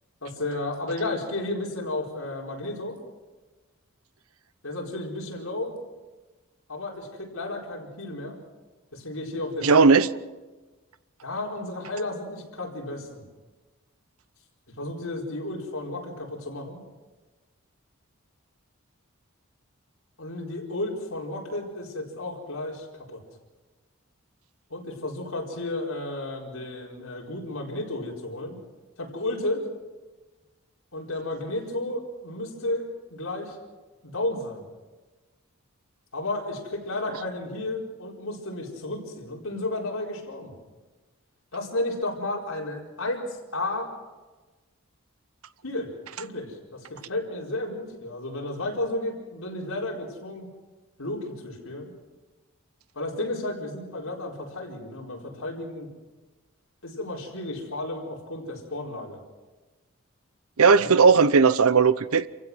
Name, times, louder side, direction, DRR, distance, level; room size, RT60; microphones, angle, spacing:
voice 1, 0.2-3.0 4.6-5.7 6.7-8.4 8.9-9.9 11.2-13.2 14.8-16.8 20.2-23.2 24.7-28.6 29.0-29.6 30.9-33.6 34.0-34.7 36.1-40.6 41.5-43.9 45.6-45.9 46.2-50.5 51.0-51.9 52.9-55.9 56.8-59.2 60.7-60.9, left 2 dB, 75° left, 4.6 m, -33 dB
voice 2, 9.6-10.1 60.6-62.3, right 5 dB, 85° right, 0.8 m, -17 dB
27.5 x 16.0 x 6.2 m
head